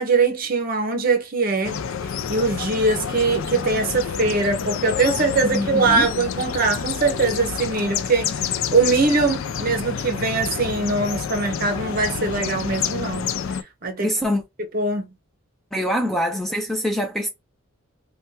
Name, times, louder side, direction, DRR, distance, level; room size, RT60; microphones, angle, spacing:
voice 1, 0.0-1.8 2.3-8.3 8.7-13.3 13.8-14.1 14.7-15.1, right 3 dB, 45° right, 0.7 m, -22 dB
sound 1, 1.6-13.6, left 7 dB, 75° left, 0.4 m, -28 dB
voice 2, 5.4-6.1 14.0-14.4 15.7-17.3, equal, ahead, 0.4 m, -24 dB
3.3 x 2.2 x 2.7 m
head